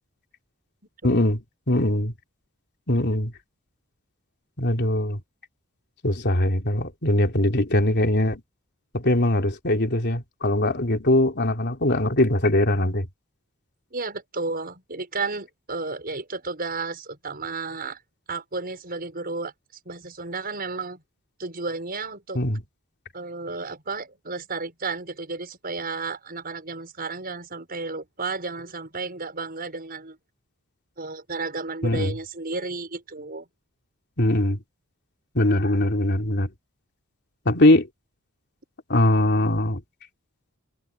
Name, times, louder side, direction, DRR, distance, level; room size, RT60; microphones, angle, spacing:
voice 1, 1.0-2.1 2.9-3.3 4.6-5.2 6.0-8.4 8.9-13.1 22.3-22.6 31.8-32.1 34.2-34.6 35.3-36.5 37.4-37.9 38.9-39.8, left 1 dB, 50° left, 3.3 m, -21 dB
voice 2, 13.9-18.0 18.3-19.5 19.8-21.0 21.4-22.4 23.1-30.2 31.0-33.4, right 3 dB, 40° right, 6.7 m, -32 dB
head